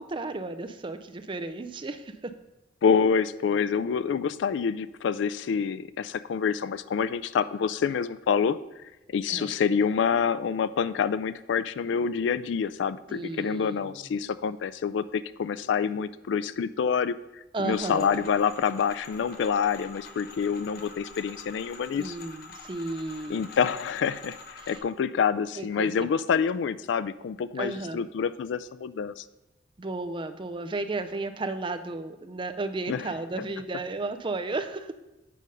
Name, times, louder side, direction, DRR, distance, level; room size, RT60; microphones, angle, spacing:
voice 1, 0.0-2.3 9.3-9.5 13.1-14.0 17.5-18.2 22.0-23.4 24.6-24.8 25.6-25.9 27.6-28.0 29.8-34.9, right 2 dB, 25° right, 10 dB, 0.5 m, -34 dB
voice 2, 2.8-8.6 9.1-22.2 23.3-29.2 32.9-33.0, left 6 dB, 75° left, 15 dB, 0.3 m, -27 dB
sound 1, 17.7-24.8, left 4 dB, 55° left, 0.9 m, -46 dB
8.5 x 5.1 x 5.4 m, 1.0 s
head